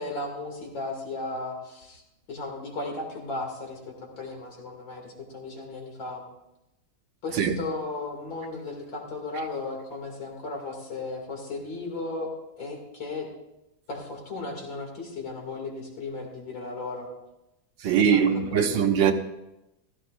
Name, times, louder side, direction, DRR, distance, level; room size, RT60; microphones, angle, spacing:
voice 1, 0.0-2.0 2.3-6.2 7.2-12.3 12.6-13.3 13.9-17.1 17.9-18.8, left 2 dB, 70° left, 3.3 m, -35 dB
voice 2, 17.8-19.1, right 7 dB, 70° right, 1.5 m, -21 dB
15.5 x 14.0 x 2.5 m
omnidirectional pair, 2.2 m